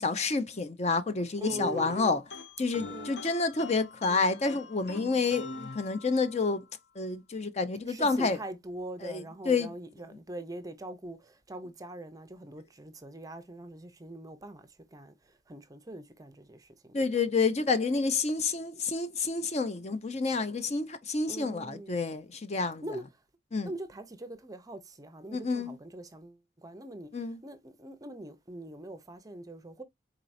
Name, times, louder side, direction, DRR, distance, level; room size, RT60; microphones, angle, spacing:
voice 1, 0.0-2.2 2.6-6.6 7.0-8.4 9.0-9.7 16.9-22.8 23.5-23.7 25.3-25.8 27.1-27.4, left 4 dB, 35° left, 0.5 m, -29 dB
sound 1, 1.4-6.5, left 3 dB, 65° left, 0.9 m, -43 dB
voice 2, 1.4-2.2 2.9-3.1 7.9-17.0 21.3-22.0 22.8-23.0 23.6-29.8, right 1 dB, 20° right, 0.5 m, -43 dB
4.5 x 3.9 x 2.6 m
head